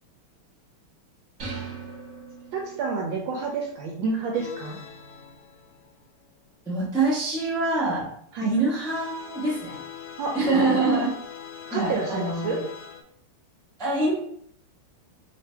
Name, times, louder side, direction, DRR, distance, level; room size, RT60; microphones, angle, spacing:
sound 1, 1.4-3.0, right 4 dB, 45° right, 1.3 m, -38 dB
voice 1, 2.5-4.8 8.3-8.5 10.2-10.3 11.7-12.6, right 4 dB, 70° right, 0 dB, 1.2 m, -29 dB
sound 2, 4.3-6.3 8.8-13.0, left 7 dB, 85° left, 1.5 m, -42 dB
voice 2, 6.7-8.1 8.4-9.8 10.3-11.1 11.7-12.5 13.8-14.1, right 2 dB, 5° left, -7 dB, 0.4 m, -24 dB
3.2 x 2.5 x 4.4 m, 0.66 s
omnidirectional pair, 2.4 m